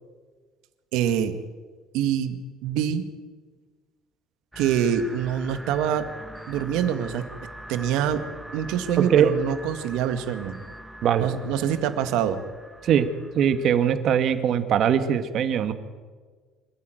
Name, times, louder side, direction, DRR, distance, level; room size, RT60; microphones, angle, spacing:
voice 1, 0.9-1.4 1.9-3.0 4.6-6.1 6.5-7.2 7.7-8.2 8.5-10.6 11.2-12.4, right 9 dB, 75° right, 10 dB, 2.0 m, -25 dB
sound 1, 4.5-14.0, right 1 dB, 5° right, 1.4 m, -43 dB
voice 2, 9.0-9.3 11.0-11.3 12.8-13.1 13.3-15.7, right 9 dB, 45° right, 10 dB, 1.7 m, -21 dB
26.5 x 14.0 x 9.3 m, 1.5 s
cardioid pair, 155°, 0 cm